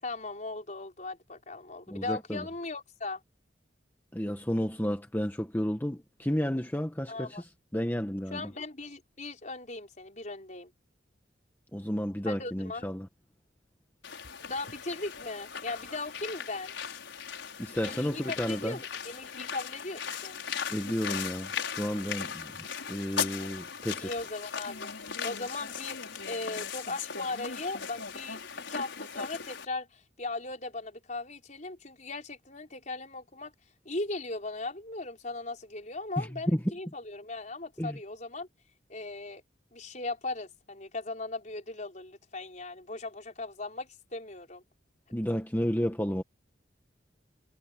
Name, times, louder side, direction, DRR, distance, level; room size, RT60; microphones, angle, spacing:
voice 1, 0.0-3.2 7.1-7.4 8.3-10.7 12.2-12.9 14.4-16.7 17.8-20.4 23.3-23.5 24.0-24.9 25.2-33.5 33.8-38.5 38.9-39.4 39.7-44.6, left 2 dB, 40° left, 5.1 m, -38 dB
voice 2, 1.9-2.4 4.1-7.5 7.7-8.5 11.7-13.1 17.6-18.8 20.7-21.5 21.8-24.1 36.2-36.6 37.8-38.0 45.1-46.2, equal, 10° left, 1.4 m, -32 dB
sound 1, 14.0-29.6, left 6 dB, 80° left, 6.0 m, -38 dB
head